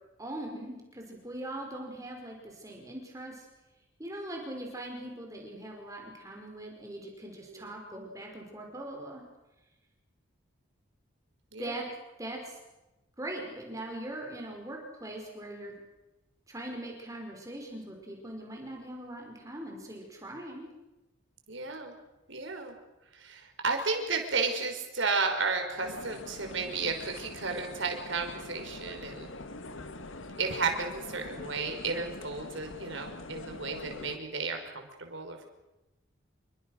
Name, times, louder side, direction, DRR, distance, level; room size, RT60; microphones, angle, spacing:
voice 1, 0.2-3.5 4.0-9.2 11.6-11.9 12.2-12.6 13.2-15.8 16.5-20.7, right 1 dB, 15° right, 1 dB, 5.2 m, -41 dB
voice 2, 21.5-21.9 22.3-22.8 23.1-29.3 30.4-35.5, right 4 dB, 65° right, 4 dB, 5.4 m, -33 dB
sound 1, 25.8-34.2, left 2 dB, 70° left, 1.7 m, -44 dB
28.5 x 24.0 x 6.6 m, 1.0 s
head